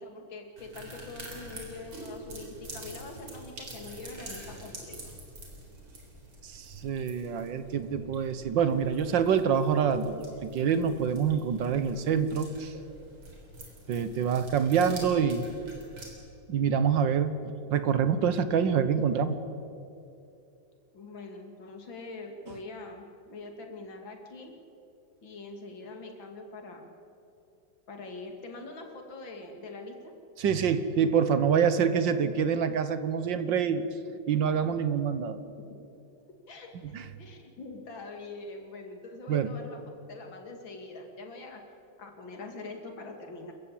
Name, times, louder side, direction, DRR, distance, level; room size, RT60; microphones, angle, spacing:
voice 1, 0.0-5.1 20.9-24.5 25.2-26.9 27.9-30.1 35.4-35.5 36.5-39.8 40.1-41.6 42.0-43.5, left 3 dB, 70° left, 3 dB, 3.1 m, -43 dB
sound 1, 0.6-16.1, right 1 dB, 90° right, 4.7 m, -46 dB
voice 2, 6.5-12.7 13.9-15.5 16.5-19.4 30.4-33.9 34.3-35.4 36.9-37.0 39.3-39.5, right 7 dB, 70° right, 12 dB, 1.6 m, -26 dB
26.5 x 15.0 x 8.6 m, 2.6 s
omnidirectional pair, 2.2 m